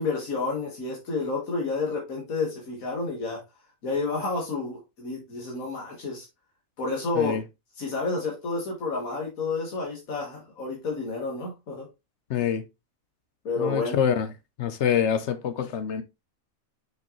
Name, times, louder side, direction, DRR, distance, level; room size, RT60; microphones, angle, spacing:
voice 1, 0.0-3.4 3.8-6.3 6.8-7.4 7.8-11.9 13.5-14.0, left 3 dB, 85° left, 2.0 m, -30 dB
voice 2, 12.3-12.6 13.6-14.3 14.6-16.0, left 8 dB, 65° left, 0.8 m, -25 dB
6.2 x 5.0 x 3.0 m
omnidirectional pair, 1.4 m